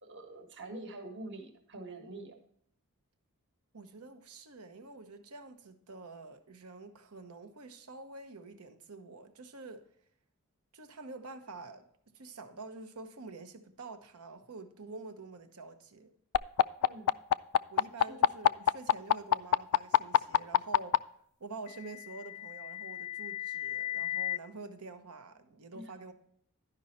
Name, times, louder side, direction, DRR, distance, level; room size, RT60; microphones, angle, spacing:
voice 1, 0.0-2.4 16.8-17.1 18.1-18.2 25.7-25.9, right 2 dB, 55° right, 1.4 m, -45 dB
voice 2, 3.7-9.9 10.7-11.9 12.1-16.1 17.7-21.1 21.4-26.1, right 3 dB, 85° right, 1.0 m, -47 dB
sound 1, 16.3-21.0 22.1-24.4, left 10 dB, 80° left, 0.3 m, -26 dB
12.0 x 5.4 x 4.2 m
head